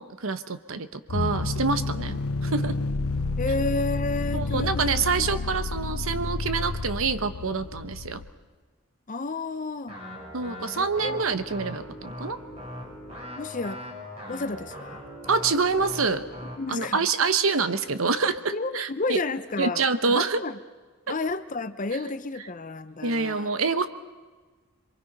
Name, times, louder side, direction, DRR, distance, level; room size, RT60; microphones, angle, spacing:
voice 1, 0.0-2.8 4.3-8.2 10.3-12.4 15.3-16.2 16.7-19.2 19.6-20.4 23.0-23.9, right 4 dB, 70° right, 11 dB, 1.1 m, -26 dB
sound 1, 1.1-8.3, left 3 dB, 85° left, 0.8 m, -30 dB
voice 2, 3.4-4.7 5.2-5.3 9.1-10.0 10.8-11.2 13.4-13.8 14.3-15.0 16.6-17.1 18.5-20.6 21.1-23.5, left 3 dB, 35° left, 12 dB, 0.8 m, -31 dB
sound 2, 9.9-16.6, left 1 dB, 30° right, 7.2 m, -40 dB
27.5 x 23.0 x 5.4 m, 1.4 s
head